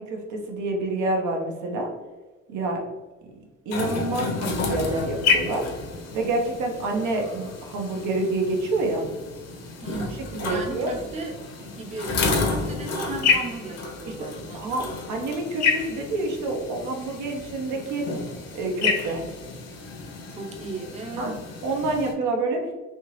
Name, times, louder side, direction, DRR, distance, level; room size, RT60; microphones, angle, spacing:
voice 1, 0.0-1.9 2.5-2.8 3.7-5.7 6.1-9.0 10.3-10.9 14.1-14.2 14.5-18.1 18.5-19.2 21.2-21.4 21.6-22.7, right 2 dB, 85° right, 1 dB, 0.8 m, -27 dB
sound 1, 3.7-22.1, left 4 dB, 60° left, 0.8 m, -30 dB
voice 2, 9.8-10.2 10.5-11.4 11.6-14.6 20.3-21.4, right 2 dB, 25° right, 2 dB, 0.5 m, -35 dB
3.5 x 2.8 x 2.9 m, 1.2 s
cardioid pair, 110°, 29 cm